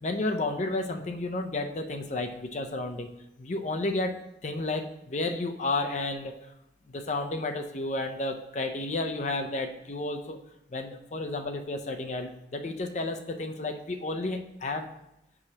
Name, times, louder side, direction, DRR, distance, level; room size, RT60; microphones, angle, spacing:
voice 1, 0.0-3.1 3.4-6.4 6.9-10.4 10.7-14.9, left 2 dB, 40° left, 6 dB, 0.5 m, -32 dB
7.5 x 4.8 x 2.8 m, 0.85 s
head